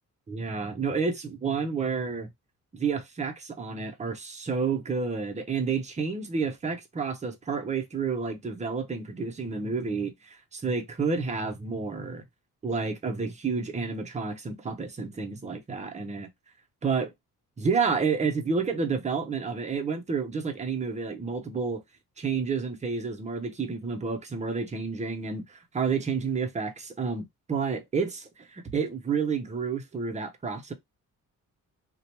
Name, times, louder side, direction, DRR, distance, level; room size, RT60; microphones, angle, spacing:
voice 1, 0.3-2.3 2.7-12.2 12.6-16.3 16.8-17.1 17.6-21.8 22.2-30.7, right 5 dB, 20° right, 0.6 m, -30 dB
2.8 x 2.2 x 2.8 m
cardioid pair, 110°, 33 cm